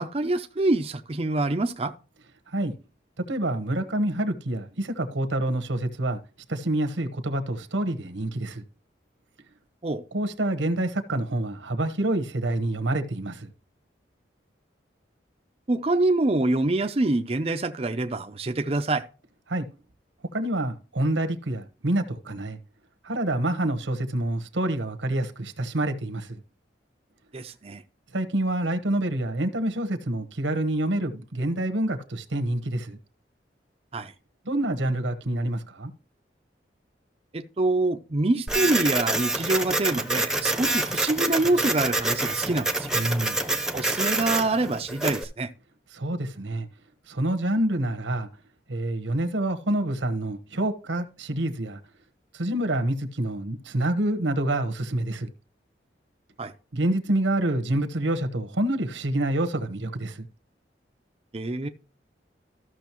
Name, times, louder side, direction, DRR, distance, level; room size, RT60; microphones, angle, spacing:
voice 1, 0.0-1.9 9.8-10.0 15.7-19.1 27.3-27.8 33.9-34.1 37.3-42.9 43.7-45.5 56.4-56.5 61.3-61.7, right 2 dB, 30° right, 0.5 m, -25 dB
voice 2, 3.3-6.2 6.5-8.6 10.1-13.5 19.5-19.6 20.3-22.6 23.0-26.4 28.1-33.0 34.4-35.9 42.9-43.4 45.9-46.7 47.1-48.3 48.7-51.8 52.3-55.3 56.7-60.2, right 1 dB, 90° right, 1.2 m, -27 dB
Printer, 38.5-45.2, right 2 dB, 5° right, 0.8 m, -27 dB
14.0 x 6.3 x 3.0 m
head